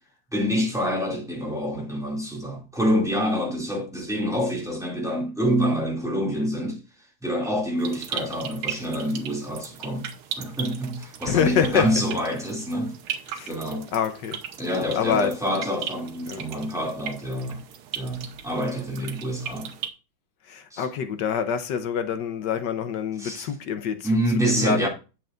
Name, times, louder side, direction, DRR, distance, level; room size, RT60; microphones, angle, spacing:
voice 1, 0.3-6.8 7.2-10.1 10.4-13.0 13.5-13.9 14.6-17.6 17.9-19.7 20.7-20.8 23.2-23.5 24.0-24.9, equal, ahead, 2.2 m, -26 dB
sound 1, 7.8-19.9, right 9 dB, 80° right, 1.8 m, -38 dB
voice 2, 11.2-11.9 13.3-13.5 13.9-14.4 14.9-15.3 16.3-16.4 20.4-24.2 24.4-24.9, left 7 dB, 65° left, 1.2 m, -26 dB
8.3 x 7.6 x 2.5 m
omnidirectional pair, 2.3 m